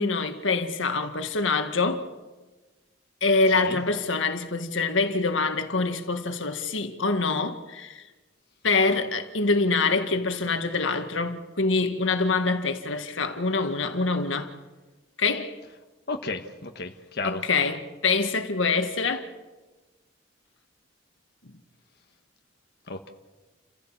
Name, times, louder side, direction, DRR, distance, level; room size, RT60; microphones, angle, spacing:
voice 1, 0.0-2.0 3.2-8.0 8.6-14.5 15.2-15.6 17.2-19.3, left 3 dB, 85° left, 1.9 m, -25 dB
voice 2, 16.1-17.4 22.9-23.1, left 3 dB, 55° left, 1.5 m, -33 dB
30.0 x 15.5 x 7.4 m
head